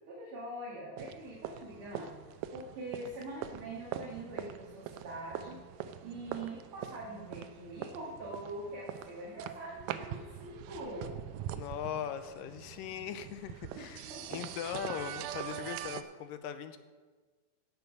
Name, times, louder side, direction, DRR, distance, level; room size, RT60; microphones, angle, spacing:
voice 1, 0.1-2.1 2.5-11.2 13.8-14.4, right 1 dB, 45° right, -4 dB, 2.1 m, -44 dB
sound 1, 1.0-16.0, right 10 dB, 80° right, 2.1 m, -43 dB
voice 2, 11.5-16.8, left 9 dB, 80° left, 11 dB, 2.2 m, -40 dB
16.0 x 7.0 x 5.5 m, 1.4 s
omnidirectional pair, 4.1 m